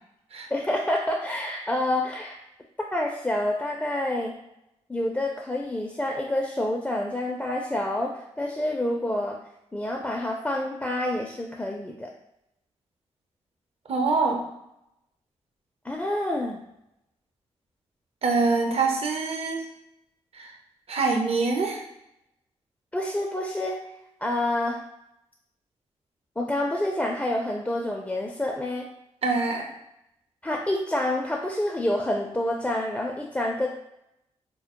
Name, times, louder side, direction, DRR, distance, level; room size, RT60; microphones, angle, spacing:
voice 1, 0.5-2.4 2.9-4.3 4.9-9.4 9.7-12.1 15.8-16.6 22.9-23.8 24.2-24.8 26.4-28.9 30.4-33.7, left 1 dB, 10° left, 0 dB, 0.4 m, -28 dB
voice 2, 13.9-14.5 18.2-19.6 20.3-20.5 20.9-21.8 29.2-29.7, right 4 dB, 55° right, 2 dB, 0.5 m, -24 dB
2.1 x 2.0 x 2.8 m, 0.83 s
supercardioid pair, 45°, 12 cm